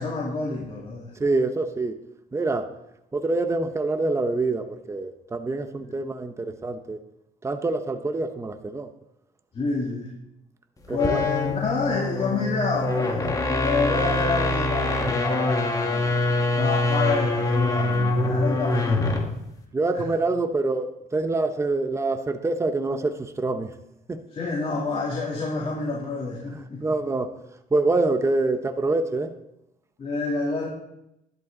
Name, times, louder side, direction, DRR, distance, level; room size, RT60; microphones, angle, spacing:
voice 1, 0.0-1.1 5.8-5.9 9.5-10.1 10.9-16.1 16.5-19.3 19.9-20.0 24.3-26.8 30.0-30.7, left 3 dB, 35° left, 3.2 m, -28 dB
voice 2, 1.2-2.0 2.3-2.8 3.1-7.0 7.4-8.9 10.9-11.3 18.3-18.4 19.7-23.8 24.1-24.2 26.5-27.4 27.7-29.4, right 3 dB, 15° right, 0.9 m, -26 dB
sound 1, 10.9-19.4, left 2 dB, 20° left, 1.9 m, -24 dB
13.5 x 12.0 x 3.9 m
cardioid pair, 110°, 17 cm